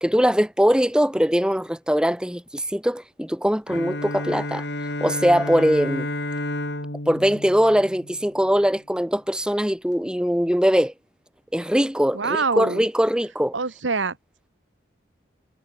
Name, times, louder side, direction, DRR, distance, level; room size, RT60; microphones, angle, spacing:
voice 1, 0.0-4.6 5.0-6.1 7.1-10.9 11.5-13.5, equal, 5° right, 1.4 m, -21 dB
Bowed string instrument, 3.7-8.6, left 1 dB, 65° left, 4.9 m, -31 dB
voice 2, 12.1-12.9 13.5-14.2, right 4 dB, 85° right, 1.4 m, -25 dB
head